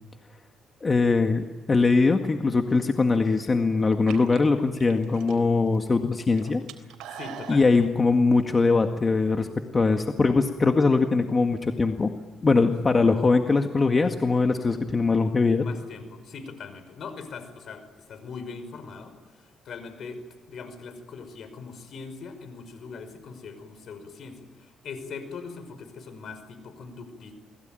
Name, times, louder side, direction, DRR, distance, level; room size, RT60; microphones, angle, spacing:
voice 1, 0.8-6.6 7.5-9.5 9.7-12.1 12.4-15.6, left 3 dB, 30° left, 5 dB, 1.9 m, -22 dB
sound 1, 2.9-3.3 3.9-5.8 6.1-7.7, right 8 dB, 90° right, 3.5 m, -42 dB
voice 2, 7.1-7.8 12.6-13.2 15.6-20.2 20.5-27.3, left 5 dB, 65° left, 10 dB, 5.5 m, -41 dB
28.5 x 21.0 x 9.2 m, 1.3 s
cardioid pair, 90°, 0 cm